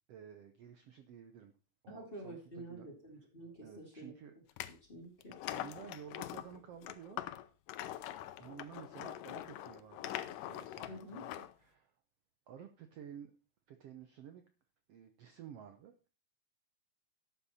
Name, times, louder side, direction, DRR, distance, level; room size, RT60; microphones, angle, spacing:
voice 1, 0.1-1.5 1.8-2.4 2.7-2.9 3.6-4.4 5.5-7.2 8.4-11.9 12.5-13.3 13.7-14.4 14.9-16.1, right 9 dB, 65° right, 8 dB, 1.6 m, -52 dB
voice 2, 1.9-4.1 4.7-5.3 10.9-11.3, right 1 dB, 20° left, 0 dB, 2.2 m, -49 dB
sound 1, 4.5-4.7 5.2-11.5, left 13 dB, 85° left, 2.3 m, -43 dB
12.0 x 8.3 x 4.2 m, 0.33 s
omnidirectional pair, 3.7 m